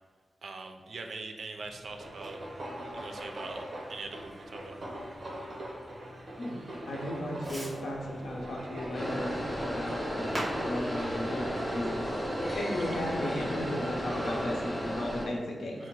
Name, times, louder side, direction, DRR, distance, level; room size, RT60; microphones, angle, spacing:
voice 1, 0.4-2.4 2.9-3.6 3.9-4.8 15.8-15.9, right 3 dB, 75° right, 4 dB, 0.4 m, -42 dB
Fireworks, 1.5-12.9, equal, 30° right, 1.5 m, -47 dB
sound 1, 1.9-14.9, right 1 dB, 45° right, 0.8 m, -42 dB
voice 2, 6.9-15.9, left 1 dB, 90° left, -1 dB, 0.8 m, -36 dB
sound 2, 8.9-15.2, equal, 15° left, 1.0 m, -34 dB
4.5 x 2.1 x 4.6 m, 1.4 s
wide cardioid pair, 165°, 0 cm